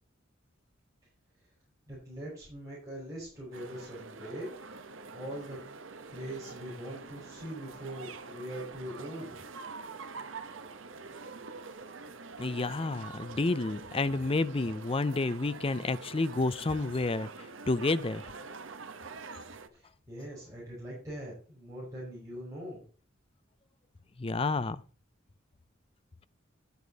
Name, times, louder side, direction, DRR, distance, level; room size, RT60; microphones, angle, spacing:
voice 1, 1.9-4.5 5.1-5.6 6.1-9.4 19.7-22.9, equal, 15° right, 5.0 m, -42 dB
sound 1, 3.5-19.7, right 4 dB, 70° right, 1.0 m, -45 dB
voice 2, 12.4-18.2 24.2-24.8, left 3 dB, 30° left, 0.5 m, -30 dB
11.0 x 8.3 x 4.1 m
head